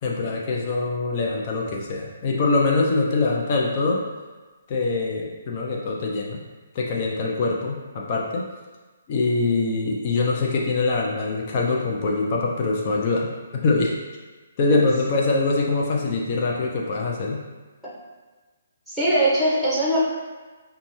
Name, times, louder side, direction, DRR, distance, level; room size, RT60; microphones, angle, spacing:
voice 1, 0.0-4.0 4.7-6.4 6.7-8.5 9.1-13.3 13.6-13.9 14.6-17.4, left 3 dB, 40° left, -2 dB, 0.6 m, -23 dB
voice 2, 18.9-20.0, right 1 dB, ahead, -8 dB, 1.2 m, -21 dB
5.1 x 2.3 x 3.1 m, 1.3 s
hypercardioid pair, 140°, 0 cm